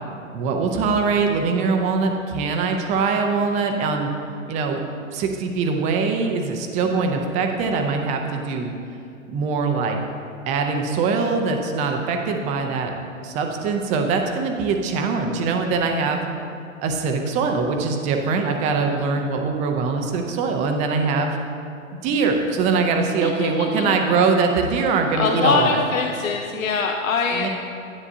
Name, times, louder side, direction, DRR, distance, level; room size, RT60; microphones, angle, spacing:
voice 1, 0.3-4.1 4.5-4.8 5.1-8.7 9.3-10.0 10.5-12.9 13.2-16.2 16.8-21.4 22.0-25.8 27.3-27.5, right 4 dB, 20° right, 4 dB, 0.5 m, -22 dB
voice 2, 23.2-24.0 25.2-27.5, left 5 dB, 80° left, 2 dB, 0.7 m, -23 dB
10.0 x 9.3 x 2.7 m, 2.6 s
hypercardioid pair, 120°, 40 cm